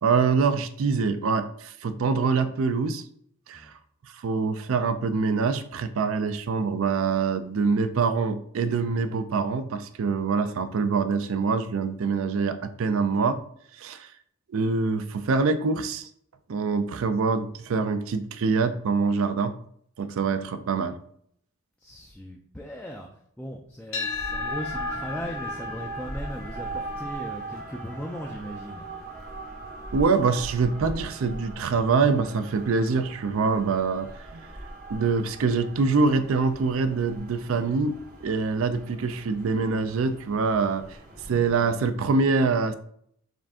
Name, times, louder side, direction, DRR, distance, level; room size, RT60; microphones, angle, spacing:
voice 1, 0.0-3.0 3.5-3.7 4.1-13.4 13.8-14.1 14.5-16.1 16.5-19.5 20.0-21.0 29.9-34.4 34.9-41.0 41.2-42.8, right 4 dB, 65° right, 11 dB, 0.4 m, -25 dB
voice 2, 21.8-23.1 23.4-28.9, equal, 5° left, 0 dB, 0.3 m, -38 dB
sound 1, 23.9-32.1, left 6 dB, 60° left, 0.9 m, -39 dB
sound 2, 24.0-41.9, right 2 dB, 40° right, 0.7 m, -39 dB
5.0 x 2.5 x 3.5 m, 0.67 s
head